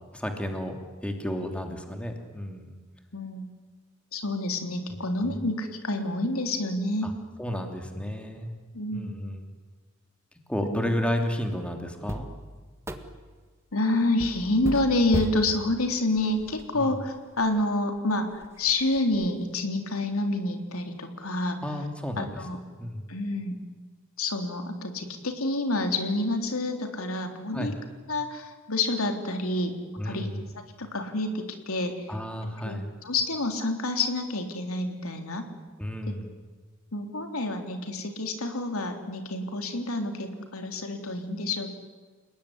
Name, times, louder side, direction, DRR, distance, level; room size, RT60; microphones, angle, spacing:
voice 1, 0.1-0.8 1.0-2.8 7.0-7.1 7.4-8.5 8.9-9.4 10.5-12.3 16.7-17.0 21.6-22.4 22.8-23.0 27.5-27.7 30.0-30.4 32.1-32.9 35.8-36.3, equal, 5° left, 4 dB, 3.0 m, -32 dB
voice 2, 3.1-3.4 4.1-7.1 8.7-9.1 10.6-10.9 13.7-21.6 22.2-22.6 23.1-23.6 24.2-27.8 28.1-29.8 30.0-30.3 30.5-32.1 32.6-35.4 36.9-41.7, left 2 dB, 90° left, 5 dB, 3.3 m, -28 dB
sound 1, 12.1-13.4 14.2-16.8 17.4-17.5 18.0-18.1 18.4-19.3, equal, 15° right, 1.7 m, -37 dB
30.0 x 19.5 x 10.0 m, 1.4 s
head